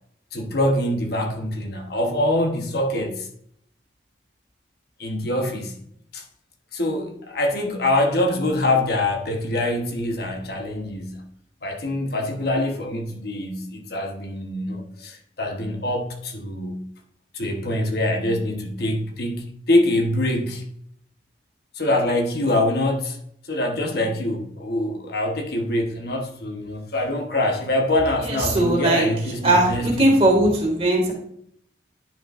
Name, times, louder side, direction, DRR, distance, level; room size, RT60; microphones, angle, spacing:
voice 1, 0.3-3.3 5.0-5.7 6.1-6.2 6.7-11.2 11.6-16.9 17.3-20.6 21.7-23.2 23.5-30.1, left 1 dB, 60° left, 3 dB, 1.1 m, -24 dB
voice 2, 28.2-29.1 29.4-31.1, right 1 dB, 35° right, -1 dB, 2.0 m, -19 dB
10.0 x 5.9 x 2.5 m, 0.69 s
head